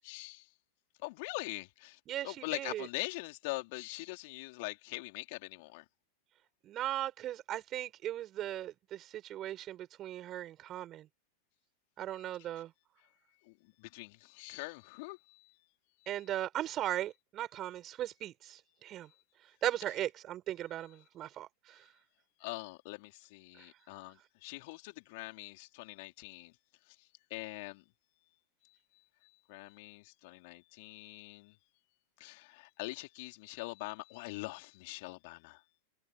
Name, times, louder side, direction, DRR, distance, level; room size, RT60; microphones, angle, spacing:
voice 1, 0.0-0.5 1.0-5.9 12.1-12.5 13.0-15.6 16.0-16.3 22.4-26.6 26.9-27.8 28.6-28.8 29.2-31.6 32.2-35.6, left 26 dB, 50° left, 3.8 m, -44 dB
voice 2, 2.1-2.9 6.6-11.1 12.0-12.7 16.1-19.1 19.6-21.8, right 12 dB, 30° right, 7.4 m, -38 dB
open air
figure-of-eight pair, 90°, 0 cm